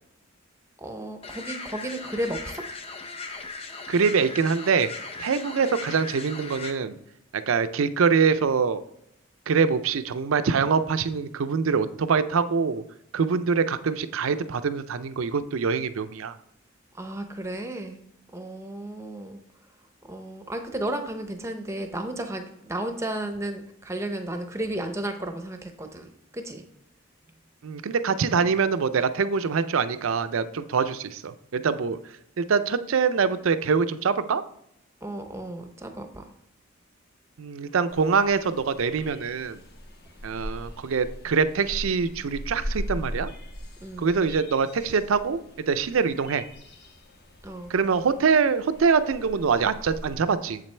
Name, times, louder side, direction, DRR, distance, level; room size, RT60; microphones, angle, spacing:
voice 1, 0.8-2.6 16.9-18.0 18.3-19.4 20.0-26.6 35.0-36.3 43.8-44.1 47.4-47.7, right 1 dB, 15° right, 6 dB, 0.6 m, -33 dB
sound 1, 1.2-6.7, left 4 dB, 30° left, 0.6 m, -38 dB
voice 2, 3.9-4.9 5.2-7.0 7.3-8.8 9.5-12.8 13.1-16.4 27.6-32.0 32.4-34.4 37.4-39.6 40.2-43.3 44.0-45.4 45.7-46.5 47.7-50.6, right 5 dB, 75° right, 12 dB, 0.5 m, -24 dB
sound 2, 37.9-50.1, equal, 50° left, 1.2 m, -40 dB
7.5 x 7.3 x 3.3 m, 0.77 s
head